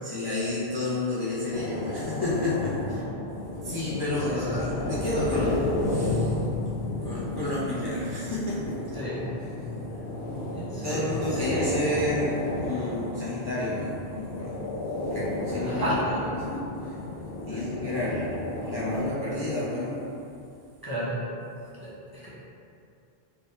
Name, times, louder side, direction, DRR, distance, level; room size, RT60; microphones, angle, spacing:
voice 1, 0.0-3.0 3.6-6.4 7.0-8.9 10.8-14.7 15.1-17.0 17.4-20.0, left 1 dB, 35° left, -8 dB, 0.4 m, -31 dB
sound 1, 1.5-19.1, left 2 dB, 80° left, 0.9 m, -32 dB
voice 2, 4.3-4.6 8.9-9.2 10.5-11.7 15.6-16.2 17.5-17.6 20.8-21.2 21.8-22.3, right 1 dB, 25° right, -8 dB, 0.7 m, -33 dB
4.4 x 2.2 x 3.3 m, 2.5 s
omnidirectional pair, 1.1 m